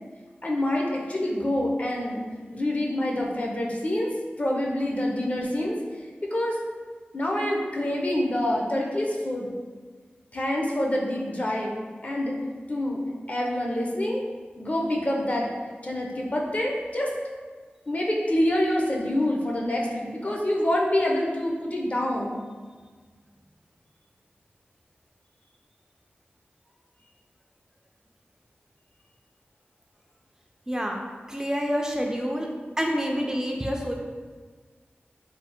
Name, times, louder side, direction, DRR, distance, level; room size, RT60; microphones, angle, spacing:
voice 1, 0.4-2.2 2.5-4.1 4.4-5.8 6.3-6.6 7.1-9.5 10.3-11.8 12.0-12.4 12.7-13.0 13.3-14.2 14.6-15.5 15.8-17.1 17.9-22.4, left 1 dB, 40° left, -1 dB, 0.5 m, -26 dB
voice 2, 30.7-31.0 31.3-32.5 32.8-33.9, equal, 15° right, 0 dB, 0.3 m, -27 dB
3.2 x 2.0 x 2.8 m, 1.5 s
wide cardioid pair, 55°, 4 cm